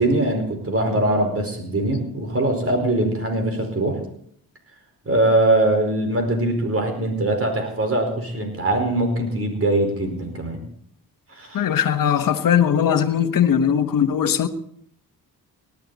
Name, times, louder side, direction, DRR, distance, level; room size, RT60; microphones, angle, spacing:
voice 1, 0.0-4.0 5.0-10.6 11.3-11.6, right 1 dB, 40° right, 4.7 m, -22 dB
voice 2, 11.5-14.5, left 8 dB, 65° left, 1.3 m, -19 dB
18.5 x 12.0 x 4.1 m
cardioid pair, 75°, 36 cm